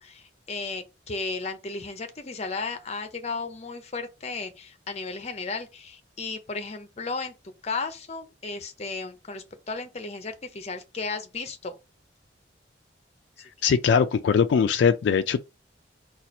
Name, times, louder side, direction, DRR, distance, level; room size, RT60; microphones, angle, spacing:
voice 1, 0.0-7.3 7.6-11.7, left 4 dB, 35° left, 0.6 m, -34 dB
voice 2, 13.6-15.4, left 6 dB, 70° left, 0.3 m, -21 dB
4.2 x 2.4 x 4.2 m
head